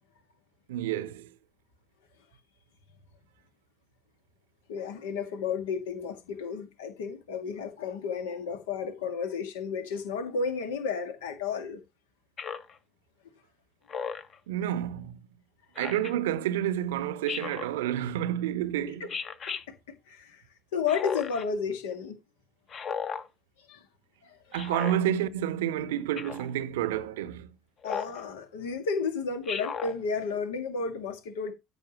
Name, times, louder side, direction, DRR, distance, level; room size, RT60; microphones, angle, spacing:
voice 1, 0.7-1.3 14.5-15.2 15.8-19.1 24.5-27.5, right 11 dB, 70° right, 0.8 m, -29 dB
voice 2, 4.7-11.8 19.0-19.1 19.5-19.6 20.1-20.4 20.7-22.2 23.7-23.8 24.2-24.4 27.8-31.5, left 5 dB, 70° left, 1.9 m, -32 dB
Speech synthesizer, 12.4-12.7 13.9-14.4 15.8-16.1 17.3-17.7 19.1-19.6 20.9-21.4 22.7-23.3 24.5-24.9 26.2-26.5 27.8-28.2 29.5-29.9, left 6 dB, 45° left, 1.6 m, -35 dB
13.5 x 6.5 x 3.0 m
figure-of-eight pair, 60°, 0 cm